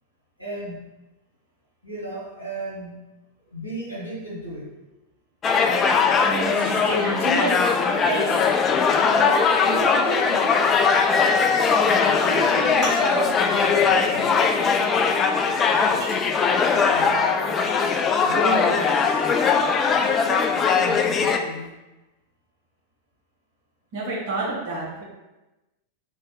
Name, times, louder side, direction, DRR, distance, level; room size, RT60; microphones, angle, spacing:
voice 1, 0.4-0.8 1.8-3.0 3.5-4.7 9.2-10.7 12.2-14.6 16.8-17.7 18.2-19.3 20.7-21.7, right 2 dB, 90° right, -5 dB, 1.2 m, -33 dB
sound 1, 5.4-21.4, left 5 dB, 25° left, 0.3 m, -20 dB
voice 2, 6.2-7.5 8.1-8.2 23.9-25.0, right 2 dB, 55° right, -6 dB, 1.4 m, -28 dB
sound 2, 11.1-18.4 18.7-21.7, equal, 5° right, 1.4 m, -37 dB
3.3 x 2.5 x 4.0 m, 1.1 s
figure-of-eight pair, 90°, 0 cm